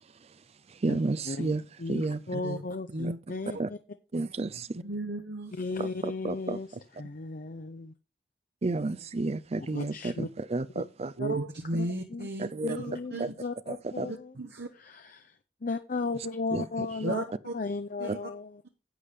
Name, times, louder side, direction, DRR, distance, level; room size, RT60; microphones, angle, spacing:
voice 1, 0.7-1.6 1.9-2.2 3.0-3.1 3.6-3.7 4.1-4.7 5.8-6.6 8.6-11.1 12.4-12.8 13.2-13.3 13.7-14.1 16.5-17.1, right 3 dB, 35° right, 0.5 m, -31 dB
voice 2, 1.8-3.8 5.5-6.7 7.0-7.9 9.6-10.3 10.7-10.8 11.2-11.3 11.8-12.3 12.6-14.3 14.8-17.2 17.5-18.6, left 3 dB, 50° left, 0.6 m, -35 dB
voice 3, 4.8-5.5 11.2-12.5 12.8-13.3 14.1-14.7 17.0-17.5 18.0-18.2, right 2 dB, 65° right, 1.1 m, -34 dB
11.0 x 8.3 x 3.5 m
head